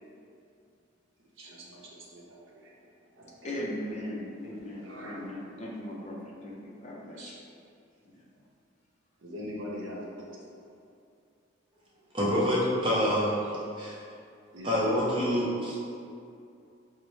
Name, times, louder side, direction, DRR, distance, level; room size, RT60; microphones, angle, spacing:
voice 1, 1.4-2.7 3.2-3.5 4.6-5.3 7.2-7.3 9.2-10.3 14.5-14.7, equal, 80° right, -4 dB, 0.7 m, -42 dB
voice 2, 3.4-7.4 8.0-8.2, left 1 dB, 35° left, -3 dB, 0.5 m, -38 dB
voice 3, 12.1-14.0 14.6-15.8, equal, 25° right, -7 dB, 0.7 m, -27 dB
4.0 x 2.1 x 3.1 m, 2.4 s
head